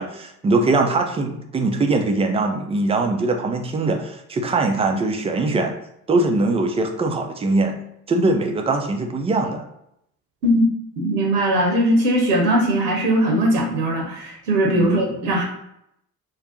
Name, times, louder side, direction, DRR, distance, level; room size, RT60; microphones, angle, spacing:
voice 1, 0.0-5.7 6.1-7.8 8.1-9.6 14.7-15.1, right 2 dB, 15° right, 3 dB, 0.3 m, -21 dB
voice 2, 11.0-15.4, right 1 dB, 70° right, -1 dB, 0.8 m, -19 dB
2.5 x 2.2 x 3.7 m, 0.77 s
figure-of-eight pair, 55°, 44 cm